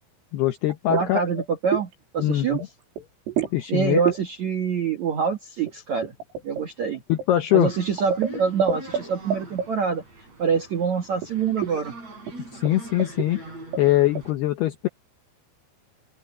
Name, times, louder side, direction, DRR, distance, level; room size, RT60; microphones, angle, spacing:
voice 1, 0.3-1.2 2.2-2.6 3.5-4.0 7.1-7.7 12.5-13.4 13.8-14.9, left 14 dB, 75° left, 2.4 m, -22 dB
sound 1, 0.7-1.1 1.4-1.9 2.2-2.7 3.0-3.6 4.0-4.2 5.7-9.0 9.3-9.7 11.2-11.3 11.6-11.8 12.3-12.4 12.7-12.8 13.0-13.3 13.7-14.2, right 8 dB, 85° right, 7.5 m, -28 dB
voice 2, 0.9-2.6 3.7-6.1 6.4-7.0 7.5-10.0 10.4-11.9, right 6 dB, 65° right, 1.8 m, -25 dB
sound 2, 7.6-14.3, right 2 dB, 30° right, 8.9 m, -42 dB
open air
omnidirectional pair, 5.9 m